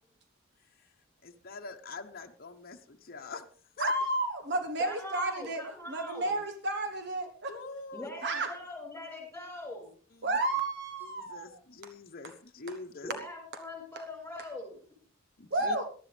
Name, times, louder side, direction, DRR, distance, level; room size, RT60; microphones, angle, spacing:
voice 1, 1.2-3.5 3.8-3.9 7.5-8.1 10.1-10.4 11.0-13.1 15.4-15.8, left 3 dB, 50° left, 3 dB, 1.0 m, -44 dB
voice 2, 3.8-5.6 5.9-7.5 8.2-8.5 10.2-11.6 15.5-15.9, right 2 dB, 60° right, 6 dB, 1.3 m, -31 dB
voice 3, 4.8-6.4 7.9-9.9 13.0-14.8, left 1 dB, 10° left, 2 dB, 5.7 m, -42 dB
18.5 x 12.5 x 3.4 m, 0.43 s
head